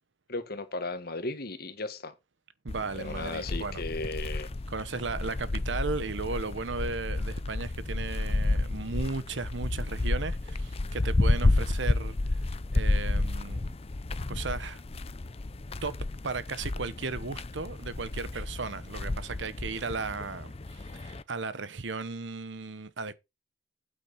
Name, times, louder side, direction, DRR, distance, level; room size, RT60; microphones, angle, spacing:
voice 1, 0.3-2.1 2.9-4.5, left 2 dB, 55° left, 1.6 m, -35 dB
voice 2, 2.6-3.8 4.7-12.2 12.7-13.7 14.3-14.8 15.8-16.0 16.2-23.1, right 4 dB, 70° right, 1.0 m, -35 dB
sound 1, 2.7-21.2, left 2 dB, 35° left, 0.6 m, -31 dB
8.8 x 8.2 x 4.2 m
head